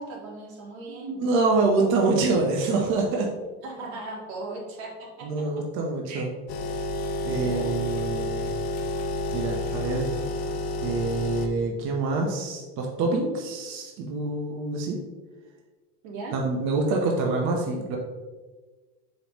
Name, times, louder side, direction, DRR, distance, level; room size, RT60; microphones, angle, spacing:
voice 1, 0.0-1.2 3.6-5.4 6.0-6.3 7.2-7.7 16.0-16.4, right 2 dB, 85° right, -2 dB, 1.9 m, -38 dB
voice 2, 0.9-3.3 5.2-6.3 7.2-8.5 9.3-10.1 10.8-15.0 16.3-18.0, right 3 dB, 40° right, 0 dB, 0.8 m, -26 dB
sound 1, 6.5-11.5, left 1 dB, 80° left, 0.8 m, -30 dB
6.7 x 5.1 x 3.0 m, 1.3 s
cardioid pair, 180°, 32 cm